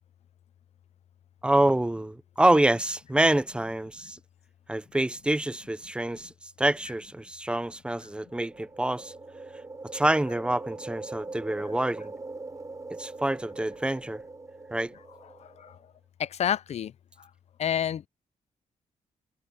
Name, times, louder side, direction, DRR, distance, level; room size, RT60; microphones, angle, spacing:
voice 1, 1.4-4.2 4.7-6.3 6.6-9.1 9.9-12.1 13.0-14.2 14.7-14.9, right 1 dB, 5° right, 0.6 m, -26 dB
sound 1, 8.1-15.8, right 3 dB, 25° right, 6.7 m, -42 dB
voice 2, 15.4-15.8 16.2-16.9 17.6-18.1, left 9 dB, 55° left, 0.4 m, -29 dB
cardioid pair, 105°, 13 cm